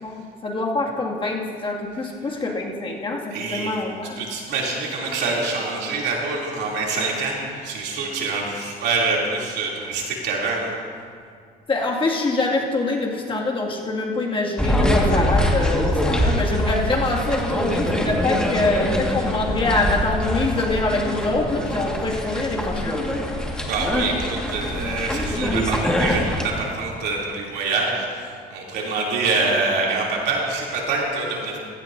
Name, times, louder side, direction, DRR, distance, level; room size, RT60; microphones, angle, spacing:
voice 1, 0.0-4.2 11.7-23.0, left 2 dB, 30° left, -2 dB, 2.2 m, -25 dB
voice 2, 3.3-3.7 4.2-10.7 23.7-31.6, right 3 dB, 80° right, -3 dB, 3.0 m, -25 dB
sound 1, 14.6-26.4, equal, 5° left, 1.8 m, -23 dB
16.5 x 15.0 x 2.7 m, 2.2 s
cardioid pair, 110°, 17 cm